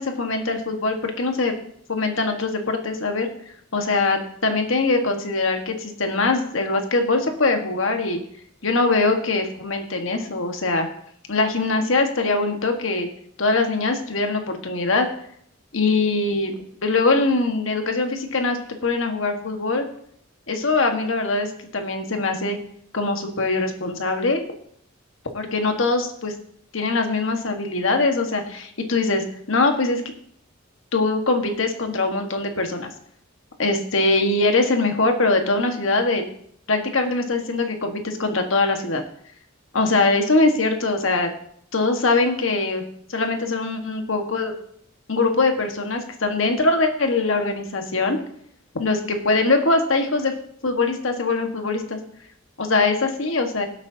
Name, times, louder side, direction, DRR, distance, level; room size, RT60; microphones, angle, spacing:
voice 1, 0.0-1.5 1.9-3.3 3.7-8.2 8.6-10.9 11.3-13.1 13.4-15.1 15.7-19.9 20.5-22.6 22.9-24.4 25.3-26.3 26.7-30.0 30.9-32.9 33.6-36.2 36.7-39.0 39.7-41.3 41.7-42.8 43.1-44.5 45.1-48.2 48.7-50.3 50.6-52.0 52.6-53.7, left 3 dB, 70° left, 4 dB, 1.5 m, -22 dB
17.5 x 8.1 x 2.8 m, 0.66 s
head